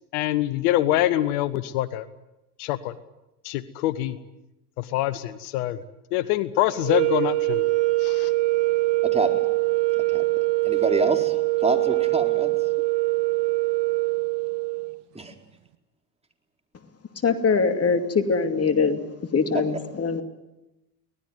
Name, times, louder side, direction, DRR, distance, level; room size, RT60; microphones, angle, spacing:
voice 1, 0.1-2.1 2.6-2.9 3.4-4.2 4.8-5.8 6.1-7.7 8.0-8.3, left 14 dB, 70° left, 15 dB, 1.3 m, -25 dB
sound 1, 6.8-15.0, right 23 dB, 60° right, 1.4 m, -23 dB
voice 2, 9.0-9.5 9.9-10.2 10.6-12.6 15.1-15.3, right 2 dB, 15° right, 3 dB, 4.4 m, -27 dB
voice 3, 17.2-19.0 19.3-20.2, left 5 dB, 30° left, 8 dB, 2.6 m, -22 dB
25.0 x 19.0 x 9.4 m, 0.95 s
hypercardioid pair, 80°, 46 cm